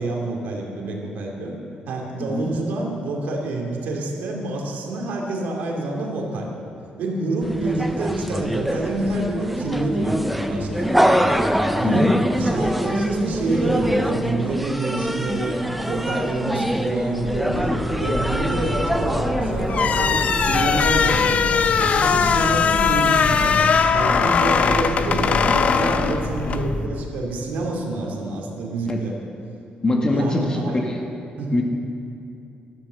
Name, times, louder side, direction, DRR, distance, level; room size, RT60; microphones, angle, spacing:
voice 1, 0.0-1.5 1.9-6.5 7.0-11.0 11.7-15.6 15.9-29.1 30.1-30.8 31.4-31.6, right 2 dB, 85° right, 0 dB, 2.6 m, -27 dB
sound 1, 7.4-20.8, equal, ahead, 0.7 m, -24 dB
voice 2, 9.4-9.7 11.8-12.1 25.8-26.0 28.9-29.0 29.8-31.0 31.5-31.6, left 2 dB, 25° left, 1 dB, 1.8 m, -23 dB
sound 2, 16.8-27.0, left 2 dB, 70° left, 2.5 m, -29 dB
sound 3, 19.7-26.7, left 6 dB, 50° left, 0.6 m, -20 dB
13.0 x 12.0 x 6.9 m, 2.6 s
cardioid pair, 110°, 3 cm